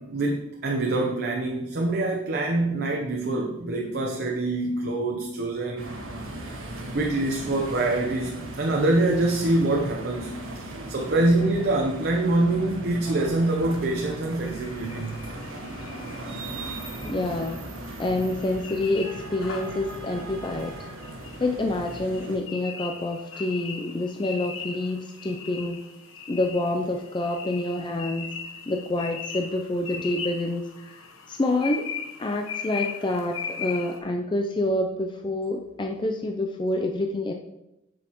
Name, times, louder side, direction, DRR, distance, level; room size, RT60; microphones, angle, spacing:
voice 1, 0.0-6.0 6.9-15.2, right 2 dB, 50° right, 1 dB, 0.7 m, -25 dB
sound 1, 5.8-22.4, right 1 dB, 75° right, 1.4 m, -38 dB
sound 2, 14.4-34.0, left 7 dB, 80° left, 0.9 m, -39 dB
voice 2, 17.0-17.6 18.0-20.7 21.4-25.8 26.3-28.3 28.7-31.0 31.3-31.9 32.2-37.3, left 2 dB, 25° left, 3 dB, 0.4 m, -27 dB
7.8 x 6.2 x 3.0 m, 0.88 s
head